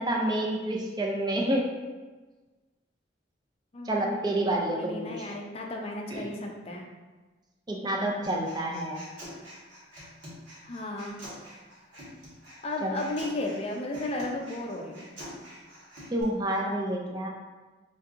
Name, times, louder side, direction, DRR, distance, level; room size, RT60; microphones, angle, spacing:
voice 1, 0.0-1.7 3.8-5.3 6.1-6.3 7.7-9.0 12.8-12.9 16.1-17.3, right 1 dB, 20° right, 0 dB, 0.5 m, -29 dB
voice 2, 3.7-6.9 10.6-11.2 12.6-15.1, left 2 dB, 30° left, 1 dB, 0.4 m, -34 dB
Human voice, 8.2-16.2, equal, 70° right, 1.4 m, -46 dB
4.4 x 2.8 x 2.5 m, 1.3 s
head